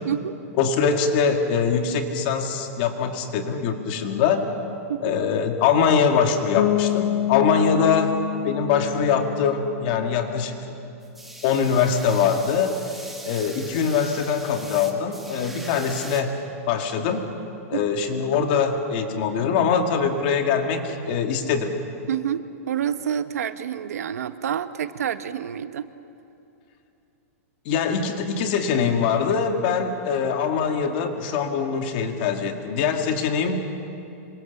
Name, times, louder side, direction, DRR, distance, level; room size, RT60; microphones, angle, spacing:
voice 1, 0.6-4.5 5.0-10.6 11.4-13.0 13.2-16.3 16.7-17.3 17.7-21.8 27.7-33.6, left 6 dB, 35° left, 5 dB, 2.2 m, -23 dB
Bass guitar, 6.6-10.4, left 12 dB, 90° left, 0.9 m, -27 dB
sound 1, 11.0-16.2, right 1 dB, ahead, 1.7 m, -41 dB
voice 2, 22.1-25.9, right 9 dB, 80° right, 11 dB, 1.3 m, -28 dB
27.0 x 24.0 x 7.2 m, 2.8 s
supercardioid pair, 175°, 8 cm